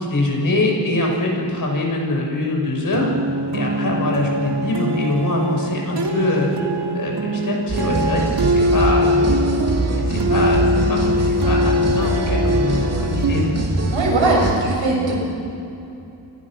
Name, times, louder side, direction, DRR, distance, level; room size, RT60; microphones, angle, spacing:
voice 1, 0.0-3.1 3.5-6.5 6.9-9.3 9.9-13.6, left 2 dB, 45° left, 0 dB, 6.3 m, -23 dB
sound 1, 2.9-13.4, equal, 65° right, 2.3 m, -22 dB
sound 2, 7.7-14.5, right 2 dB, 35° right, 2.6 m, -23 dB
voice 2, 13.9-15.1, right 2 dB, 90° right, -2 dB, 7.9 m, -19 dB
28.5 x 23.5 x 6.3 m, 2.8 s
wide cardioid pair, 135°, 45 cm